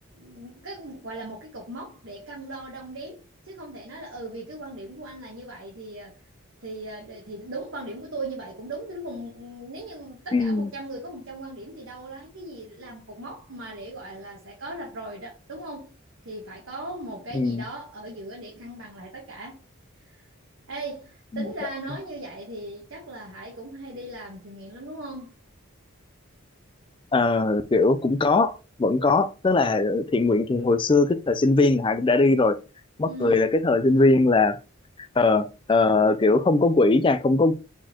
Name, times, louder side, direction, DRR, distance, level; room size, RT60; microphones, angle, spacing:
voice 1, 0.0-6.2 6.6-15.9 16.2-19.6 20.0-20.2 20.7-25.3 33.0-33.6, right 2 dB, 60° right, 1.2 m, -38 dB
voice 2, 10.3-10.7 17.3-17.6 21.3-21.5 27.1-32.6 33.0-34.6 35.2-37.5, left 3 dB, 25° left, 0.4 m, -20 dB
4.3 x 4.3 x 2.9 m
head